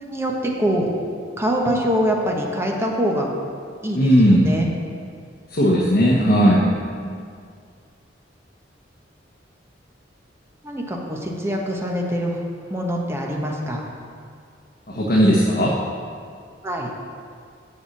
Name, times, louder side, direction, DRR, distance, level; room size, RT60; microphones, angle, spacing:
voice 1, 0.0-0.9 1.4-3.3 3.8-4.7 6.0-7.1 10.6-12.4 12.7-13.8 16.6-16.9, equal, 15° right, -1 dB, 1.1 m, -24 dB
voice 2, 3.9-4.5 5.5-6.6 14.9-15.7, equal, 55° left, -4 dB, 1.1 m, -16 dB
7.1 x 6.5 x 7.3 m, 2.2 s
head